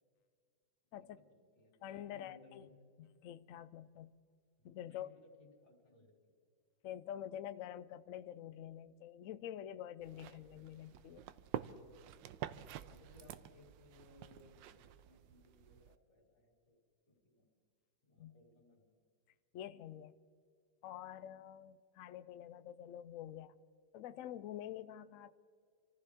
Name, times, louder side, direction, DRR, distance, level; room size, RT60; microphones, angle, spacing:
voice 1, 1.3-2.7 4.6-6.3 12.4-16.8 17.1-17.5 18.0-18.9, left 2 dB, 55° left, -1 dB, 3.6 m, -64 dB
voice 2, 1.8-2.7 3.0-4.1 4.6-5.1 6.8-11.3 18.2-18.3 19.5-20.1 20.8-23.6 23.9-25.4, left 11 dB, 90° left, 13 dB, 0.7 m, -47 dB
sound 1, 10.0-15.9, right 11 dB, 80° right, 1.3 m, -48 dB
26.5 x 15.0 x 3.6 m, 2.2 s
omnidirectional pair, 2.0 m